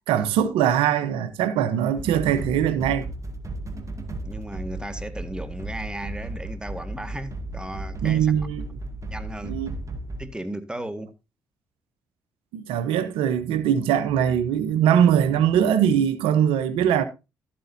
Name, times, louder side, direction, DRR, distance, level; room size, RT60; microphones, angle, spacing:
voice 1, 0.1-3.1 8.0-8.7 9.4-9.7 12.5-17.0, right 9 dB, 85° right, 0.9 m, -21 dB
sound 1, 2.0-10.3, right 1 dB, 35° right, 2.0 m, -35 dB
voice 2, 4.2-8.4 9.1-9.6 10.2-11.1, right 1 dB, 10° right, 1.7 m, -35 dB
13.0 x 8.7 x 2.7 m
supercardioid pair, 60°, 9 cm